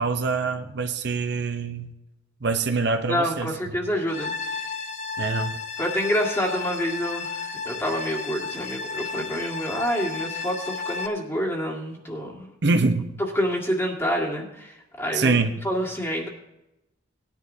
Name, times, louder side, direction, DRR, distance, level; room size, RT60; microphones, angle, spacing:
voice 1, 0.0-1.9 2.4-3.5 5.2-5.6 12.6-13.1 15.1-15.5, right 4 dB, 60° right, 6 dB, 0.7 m, -24 dB
voice 2, 3.1-4.7 5.8-12.5 13.2-15.4 15.6-16.3, equal, 15° left, -2 dB, 1.9 m, -27 dB
sound 1, 4.1-11.1, left 5 dB, 40° left, 0.7 m, -33 dB
19.0 x 10.5 x 2.7 m, 0.92 s
head